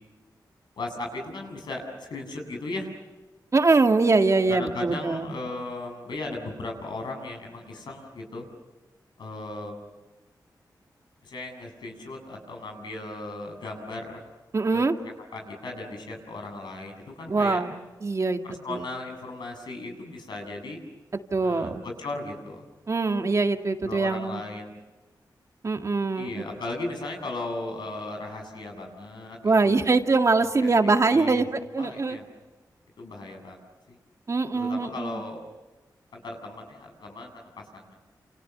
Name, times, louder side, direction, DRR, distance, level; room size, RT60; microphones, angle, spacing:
voice 1, 0.8-2.9 4.5-8.4 9.2-9.8 11.2-14.2 14.7-14.8 15.3-17.6 18.4-20.8 21.4-22.6 23.8-24.7 26.2-29.7 30.4-31.4 31.8-32.2 33.0-33.6 33.9-34.0 34.5-35.4 36.1-38.0, left 2 dB, 90° left, 2 dB, 7.6 m, -36 dB
voice 2, 3.5-5.3 14.5-15.0 17.3-17.7 18.0-18.4 18.7-18.9 21.3-21.8 22.9-24.4 25.6-26.4 29.4-32.2 34.3-35.2, right 3 dB, 45° right, 6 dB, 2.1 m, -23 dB
29.5 x 29.0 x 6.8 m, 1.2 s
wide cardioid pair, 85°, 7 cm